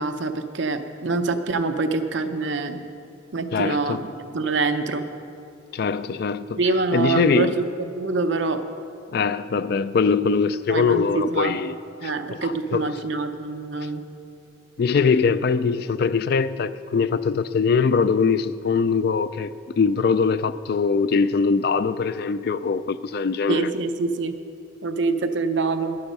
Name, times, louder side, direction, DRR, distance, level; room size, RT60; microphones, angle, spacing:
voice 1, 0.0-2.8 3.3-4.0 4.3-5.1 6.6-7.7 7.9-8.6 10.7-11.5 12.0-14.1 23.5-24.4 24.8-26.0, right 3 dB, 70° right, 0.6 m, -25 dB
voice 2, 3.5-4.0 5.7-6.6 6.9-7.6 9.1-11.8 12.0-12.9 14.8-23.7, left 5 dB, 55° left, 0.3 m, -22 dB
11.5 x 9.2 x 5.3 m
head